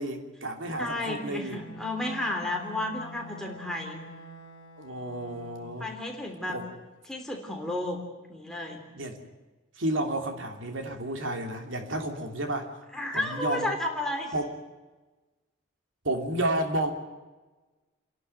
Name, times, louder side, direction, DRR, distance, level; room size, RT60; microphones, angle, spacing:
voice 1, 0.0-1.6 4.8-5.9 6.5-6.7 9.0-9.2 9.8-12.8 13.1-13.8 14.3-14.5 16.0-16.9, right 1 dB, 80° right, 4 dB, 3.0 m, -31 dB
voice 2, 0.8-4.0 5.8-6.6 7.1-8.0 8.3-8.9 12.9-14.3, left 1 dB, 5° left, 1 dB, 3.4 m, -32 dB
Bowed string instrument, 1.5-5.8, left 3 dB, 25° left, 5.0 m, -47 dB
29.5 x 11.5 x 9.1 m, 1.2 s
head